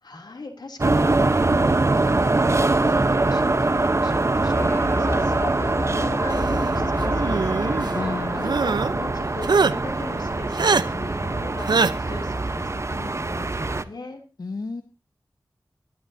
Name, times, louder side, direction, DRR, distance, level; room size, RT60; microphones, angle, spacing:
voice 1, 0.0-14.2, left 3 dB, 85° left, 4 dB, 3.0 m, -38 dB
sound 1, 0.8-13.8, right 2 dB, 40° right, 1.0 m, -23 dB
sound 2, 4.5-9.5, left 2 dB, 30° left, 0.7 m, -32 dB
sound 3, 7.0-7.9 8.4-8.9 9.4-9.7 10.5-10.8 11.7-11.9, right 4 dB, 90° right, 0.7 m, -21 dB
voice 2, 7.9-8.6 14.4-14.8, left 3 dB, 70° left, 8 dB, 1.2 m, -31 dB
23.0 x 12.0 x 2.7 m, 0.31 s
wide cardioid pair, 65°, 7 cm